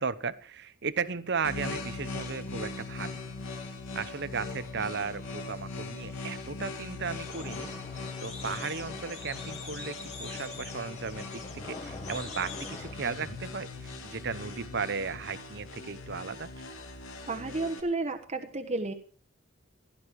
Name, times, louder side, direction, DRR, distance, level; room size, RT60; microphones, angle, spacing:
voice 1, 0.0-3.3 3.9-7.7 8.2-16.5, right 5 dB, 50° right, 15 dB, 0.9 m, -35 dB
sound 1, 1.4-17.8, left 3 dB, 65° left, 2.6 m, -40 dB
sound 2, 7.2-12.9, left 3 dB, 30° left, 4.1 m, -44 dB
voice 2, 17.3-18.9, right 2 dB, 30° right, 5 dB, 1.3 m, -32 dB
16.5 x 12.0 x 4.7 m, 0.41 s
head